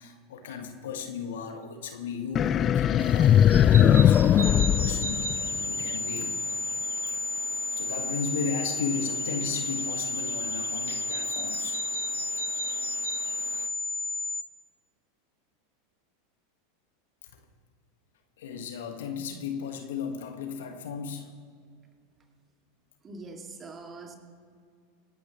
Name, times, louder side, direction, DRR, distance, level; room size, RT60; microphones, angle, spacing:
voice 1, 0.0-6.4 7.7-11.8 17.2-17.4 18.4-21.3, left 6 dB, 70° left, 6 dB, 1.6 m, -36 dB
sound 1, 2.3-5.8, left 10 dB, 35° left, 0.3 m, -20 dB
sound 2, 3.0-13.7, right 6 dB, 80° right, 0.4 m, -41 dB
sound 3, 4.4-14.4, left 3 dB, 10° left, 1.0 m, -32 dB
voice 2, 23.0-24.2, right 3 dB, 25° right, 3 dB, 2.3 m, -43 dB
26.0 x 12.0 x 3.1 m, 2.2 s
figure-of-eight pair, 85°, 0 cm